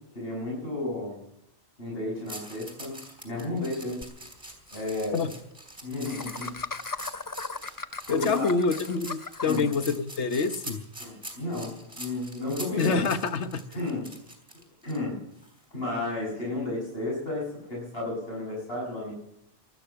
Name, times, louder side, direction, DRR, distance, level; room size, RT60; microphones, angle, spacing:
voice 1, 0.2-1.2 1.8-3.0 3.2-4.0 4.7-5.2 5.8-6.6 8.1-8.5 9.4-9.7 11.0-12.9 13.7-14.1 14.8-15.2 15.7-19.1, left 2 dB, 55° left, 7.1 m, -32 dB
sound 1, 2.3-15.0 15.4-15.6, right 1 dB, 25° right, 3.8 m, -44 dB
Laughter, 4.0-4.1 4.4-4.5 4.7-4.9 6.1-9.7, left 4 dB, 25° left, 0.4 m, -37 dB
voice 2, 8.1-10.9 12.8-13.6, left 4 dB, 75° left, 1.4 m, -26 dB
19.0 x 12.5 x 5.8 m
omnidirectional pair, 1.2 m